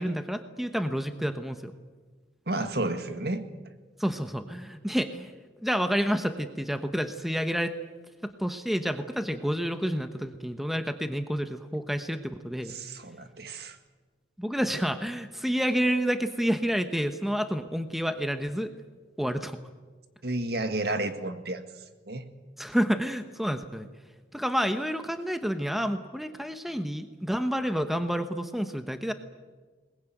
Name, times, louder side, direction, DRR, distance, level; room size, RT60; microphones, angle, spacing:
voice 1, 0.0-1.7 4.0-5.3 5.6-7.8 8.2-12.8 14.4-18.7 19.2-19.6 22.6-23.9 24.3-29.1, equal, ahead, 8 dB, 1.0 m, -29 dB
voice 2, 2.5-3.4 12.7-13.8 20.2-21.6 22.1-22.3, right 2 dB, 60° right, 8 dB, 1.9 m, -31 dB
22.0 x 20.5 x 9.2 m, 1.4 s
head